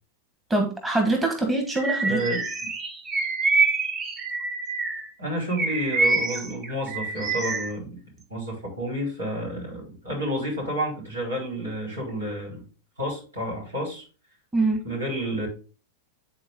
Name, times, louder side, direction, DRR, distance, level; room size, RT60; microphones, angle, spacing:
voice 1, 0.5-2.2 14.5-14.8, right 2 dB, 10° right, 3 dB, 1.6 m, -24 dB
Bird vocalization bird call bird song, 1.7-5.1 5.5-7.7, right 3 dB, 25° right, 1.3 m, -26 dB
voice 2, 2.1-2.4 5.2-8.0 8.3-12.6 13.0-14.0 14.8-15.5, equal, 75° right, -2 dB, 4.5 m, -30 dB
9.7 x 4.2 x 3.8 m, 0.35 s
figure-of-eight pair, 90°, 0 cm